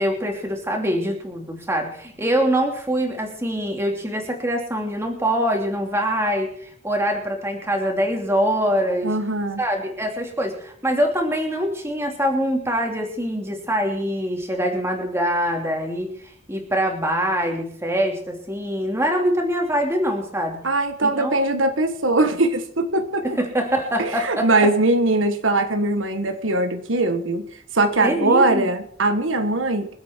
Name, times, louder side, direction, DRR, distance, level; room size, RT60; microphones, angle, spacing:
voice 1, 0.0-9.1 9.6-16.1 16.5-20.6 21.0-21.3 23.3-24.7 28.0-28.7, equal, 15° right, 2 dB, 2.9 m, -24 dB
voice 2, 9.0-9.6 20.6-23.4 24.0-27.5 27.7-30.0, right 2 dB, 80° right, 7 dB, 1.6 m, -21 dB
25.5 x 8.7 x 4.6 m, 0.62 s
head